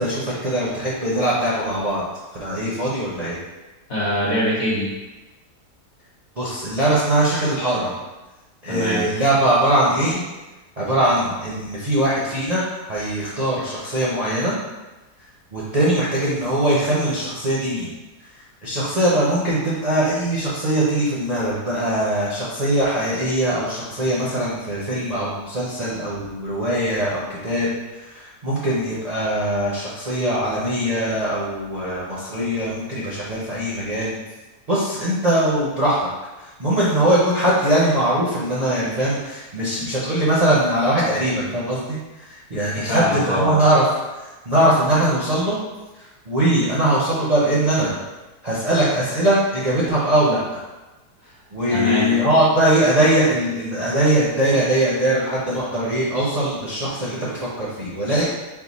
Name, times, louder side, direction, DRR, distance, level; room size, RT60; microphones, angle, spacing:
voice 1, 0.0-2.0 2.4-3.4 6.4-7.9 8.6-10.2 10.8-12.6 12.9-14.5 15.5-17.9 18.6-34.1 34.7-36.1 36.4-42.0 42.3-43.9 44.2-45.6 45.9-47.9 48.4-50.6 51.5-58.3, right 1 dB, 40° right, -8 dB, 0.6 m, -21 dB
voice 2, 3.9-4.9 8.7-9.0 42.8-43.5 51.7-52.2, left 1 dB, 50° left, -5 dB, 1.2 m, -23 dB
4.7 x 2.2 x 4.0 m, 1.1 s
omnidirectional pair, 1.7 m